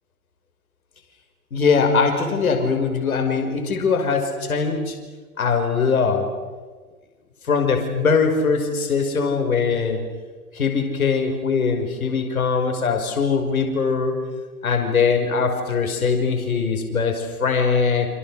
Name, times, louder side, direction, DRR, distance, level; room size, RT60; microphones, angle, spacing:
voice 1, 1.5-5.0 5.4-6.3 7.5-10.0 10.5-14.1 14.6-18.1, left 5 dB, 65° left, 5 dB, 5.8 m, -21 dB
29.0 x 28.0 x 6.7 m, 1.4 s
figure-of-eight pair, 110°, 46 cm